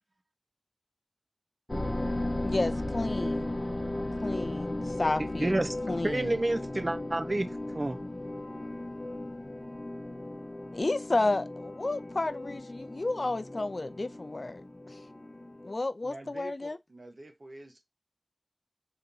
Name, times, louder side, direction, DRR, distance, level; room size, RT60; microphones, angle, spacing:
sound 1, 1.7-15.7, left 1 dB, 40° left, 0.7 m, -36 dB
voice 1, 2.4-3.5 4.2-5.6 5.9-6.3 10.7-14.6 14.9-15.0 15.6-16.8, left 2 dB, 75° left, 0.3 m, -31 dB
voice 2, 5.4-8.0, right 1 dB, 55° right, 0.5 m, -30 dB
voice 3, 16.0-17.8, right 2 dB, 75° right, 0.9 m, -47 dB
2.9 x 2.7 x 3.6 m
wide cardioid pair, 50°, 0 cm